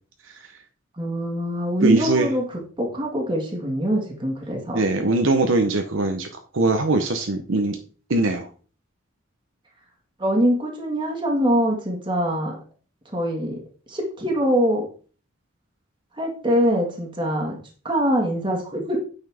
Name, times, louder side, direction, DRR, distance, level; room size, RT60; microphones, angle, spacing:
voice 1, 1.0-4.8 10.2-12.5 13.0-13.6 13.9-14.9 16.1-17.6 17.8-19.0, equal, 25° right, 0 dB, 1.8 m, -23 dB
voice 2, 1.8-2.3 4.7-6.3 6.5-7.8 8.1-8.5, right 2 dB, 85° right, 6 dB, 0.8 m, -21 dB
9.0 x 5.7 x 3.5 m, 0.40 s
head